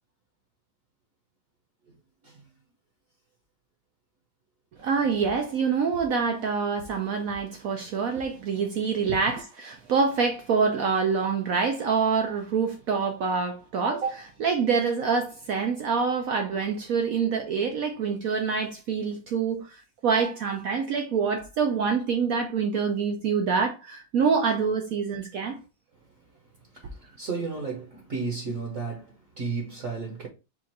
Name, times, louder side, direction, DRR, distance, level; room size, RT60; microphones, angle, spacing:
voice 1, 4.8-25.6, right 5 dB, 75° right, 0.8 m, -26 dB
voice 2, 26.7-30.3, right 4 dB, 50° right, 1.1 m, -33 dB
4.4 x 2.4 x 4.3 m
omnidirectional pair, 2.2 m